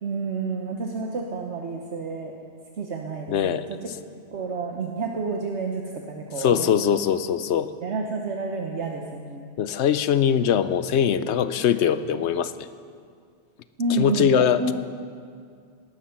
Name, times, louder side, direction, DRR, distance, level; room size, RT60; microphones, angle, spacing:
voice 1, 0.0-2.3 2.8-3.9 4.3-6.6 7.8-9.5 13.8-14.7, right 3 dB, 75° right, 1 dB, 1.4 m, -29 dB
voice 2, 3.3-3.7 6.4-7.7 9.6-12.5 14.0-14.7, left 8 dB, 75° left, 13 dB, 1.0 m, -22 dB
19.0 x 13.0 x 5.8 m, 2.2 s
omnidirectional pair, 1.2 m